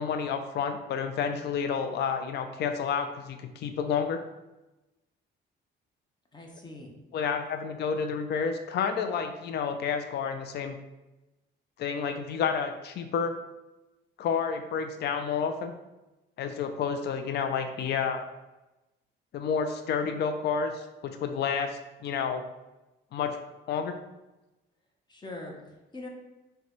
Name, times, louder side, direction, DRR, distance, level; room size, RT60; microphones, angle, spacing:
voice 1, 0.0-4.2 7.1-10.8 11.8-13.4 14.2-15.7 16.4-18.3 19.3-22.4 23.1-23.4 23.7-23.9, left 6 dB, 60° left, 7 dB, 0.4 m, -30 dB
voice 2, 6.3-6.9 25.1-26.1, left 2 dB, 20° left, 0 dB, 0.7 m, -42 dB
3.9 x 2.2 x 3.0 m, 1.0 s
cardioid pair, 90°, 20 cm